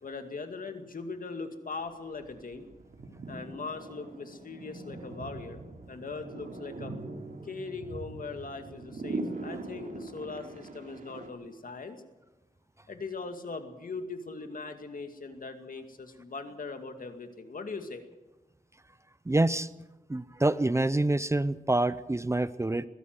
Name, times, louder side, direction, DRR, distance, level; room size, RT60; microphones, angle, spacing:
voice 1, 0.0-2.7 3.3-5.6 5.9-6.9 7.4-12.0 12.9-18.0, left 4 dB, 70° left, 7 dB, 2.3 m, -40 dB
sound 1, 1.8-1.9 2.1-11.3, right 2 dB, 70° right, 3.3 m, -41 dB
voice 2, 19.3-19.7 20.1-22.9, right 2 dB, 20° right, 15 dB, 0.6 m, -26 dB
21.5 x 15.5 x 7.8 m, 1.1 s
wide cardioid pair, 100°, 15 cm